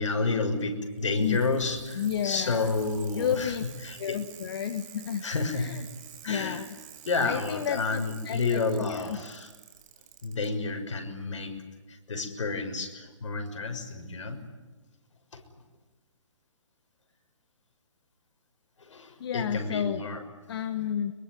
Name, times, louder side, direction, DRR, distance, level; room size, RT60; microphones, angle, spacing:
voice 1, 0.0-3.5 3.8-4.2 5.2-5.7 6.2-6.6 7.0-9.5 10.2-11.6 11.9-14.4 15.3-15.4 18.8-20.2, left 3 dB, 70° left, 5 dB, 6.3 m, -30 dB
Bicycle, 0.9-10.5 11.6-11.7, right 10 dB, 35° right, 5.5 m, -49 dB
voice 2, 1.9-2.7 3.1-3.6 4.0-5.2 5.5-5.9 6.2-6.7 7.2-9.2 19.2-20.0 20.5-21.1, left 9 dB, 50° left, 9 dB, 1.8 m, -31 dB
25.0 x 23.0 x 9.6 m, 1.3 s
hypercardioid pair, 145°, 16 cm